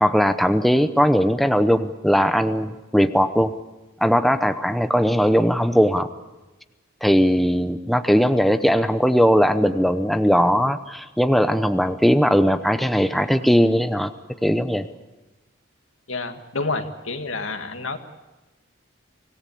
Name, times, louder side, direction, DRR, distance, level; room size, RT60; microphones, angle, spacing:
voice 1, 0.0-3.5 4.0-6.1 7.0-14.1 14.4-14.9, equal, ahead, 9 dB, 0.8 m, -19 dB
voice 2, 16.1-18.0, left 3 dB, 85° left, 7 dB, 2.0 m, -29 dB
25.0 x 18.5 x 8.5 m, 1.1 s
head